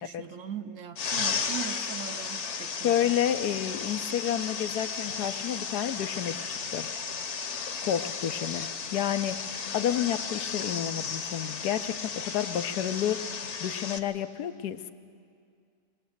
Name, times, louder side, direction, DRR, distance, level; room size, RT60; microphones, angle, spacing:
voice 1, 0.0-3.2, right 9 dB, 60° right, 8 dB, 1.0 m, -40 dB
sound 1, 1.0-14.0, left 6 dB, 50° left, 1.2 m, -34 dB
voice 2, 2.8-6.9 7.8-9.4 9.7-13.3 13.6-14.9, left 10 dB, 85° left, 10 dB, 1.3 m, -30 dB
23.0 x 18.5 x 7.9 m, 2.3 s
omnidirectional pair, 1.7 m